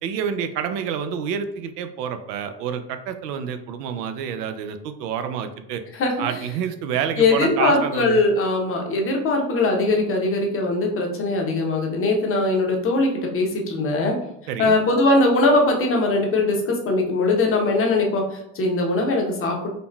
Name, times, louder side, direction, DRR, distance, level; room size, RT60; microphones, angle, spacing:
voice 1, 0.0-5.8 6.2-8.2 14.5-14.7, right 8 dB, 85° right, 8 dB, 0.5 m, -28 dB
voice 2, 7.2-14.2 14.6-19.7, left 2 dB, 30° left, 1 dB, 0.7 m, -21 dB
4.0 x 2.0 x 2.2 m, 0.80 s
hypercardioid pair, 95°, 47 cm